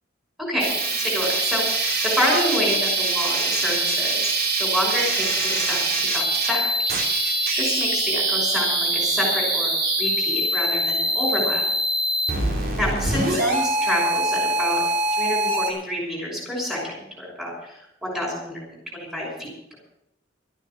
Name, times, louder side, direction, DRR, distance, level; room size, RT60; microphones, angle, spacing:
voice 1, 0.5-6.7 7.2-11.6 12.8-14.8 15.1-19.8, left 1 dB, ahead, -4 dB, 6.1 m, -28 dB
sound 1, 0.6-15.7, right 2 dB, 50° right, 3.4 m, -23 dB
13.5 x 9.1 x 8.3 m, 0.79 s
head